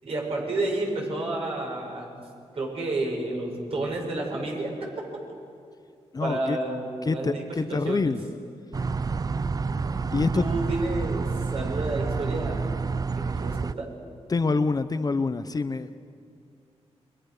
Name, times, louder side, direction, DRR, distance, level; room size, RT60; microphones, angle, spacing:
voice 1, 0.0-2.1 2.5-4.9 6.2-8.1 10.3-12.7 13.2-13.9, right 2 dB, 60° right, -1 dB, 7.6 m, -30 dB
voice 2, 6.1-6.6 7.0-8.2 10.1-10.5 14.3-16.0, left 4 dB, 35° left, 11 dB, 0.8 m, -26 dB
sound 1, 8.7-13.7, right 4 dB, 35° right, 0.5 m, -29 dB
29.0 x 23.5 x 6.7 m, 2.4 s
cardioid pair, 90°, 11 cm